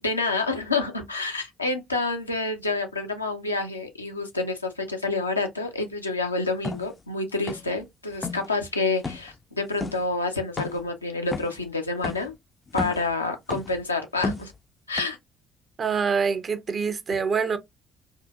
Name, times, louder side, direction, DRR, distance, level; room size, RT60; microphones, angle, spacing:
voice 1, 0.0-12.3 12.7-14.5 14.9-15.2, left 3 dB, 85° left, 0.5 m, -28 dB
sound 1, 6.6-6.9 7.5-7.8 8.1-8.5 9.0-9.3 9.8-10.0 10.6-10.9 11.3-11.6 12.0-12.3 12.7-13.1 13.5-13.8 14.2-14.6 15.0-15.1, left 4 dB, 30° left, 0.4 m, -32 dB
voice 2, 15.8-17.6, right 5 dB, 40° right, 0.6 m, -25 dB
3.6 x 2.6 x 2.3 m
figure-of-eight pair, 50°, 0 cm